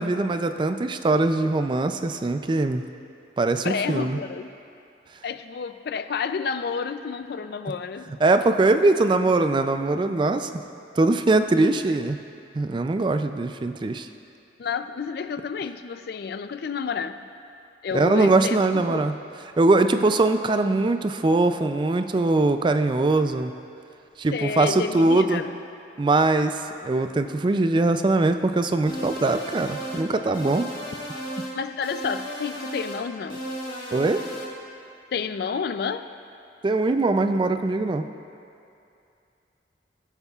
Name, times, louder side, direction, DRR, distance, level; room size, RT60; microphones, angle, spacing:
voice 1, 0.0-2.8 3.4-4.2 8.2-10.5 11.0-12.2 12.5-14.1 17.9-19.1 19.6-23.5 24.2-25.4 26.0-30.7 33.9-34.3 36.6-38.1, right 2 dB, 25° right, 8 dB, 0.3 m, -22 dB
voice 2, 3.6-4.5 5.2-8.1 14.6-17.3 17.8-19.1 24.3-25.6 31.5-33.4 35.1-36.1, left 6 dB, 60° left, 11 dB, 0.4 m, -30 dB
sound 1, 28.9-30.1 30.3-31.5 31.8-33.0 33.3-34.5, equal, 30° left, 2.7 m, -34 dB
20.5 x 8.1 x 2.4 m, 2.6 s
head